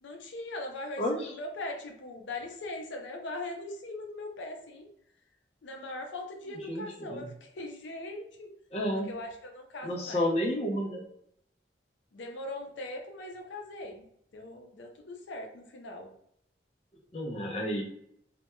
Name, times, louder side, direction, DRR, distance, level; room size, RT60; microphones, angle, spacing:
voice 1, 0.0-4.9 5.6-8.5 8.9-10.3 12.1-14.0 14.3-16.1, left 2 dB, 85° left, 3 dB, 0.5 m, -40 dB
voice 2, 1.0-1.3 6.6-7.3 8.7-9.1 9.8-11.0 17.1-17.8, left 1 dB, 35° left, -1 dB, 0.4 m, -31 dB
2.2 x 2.1 x 2.9 m, 0.70 s
head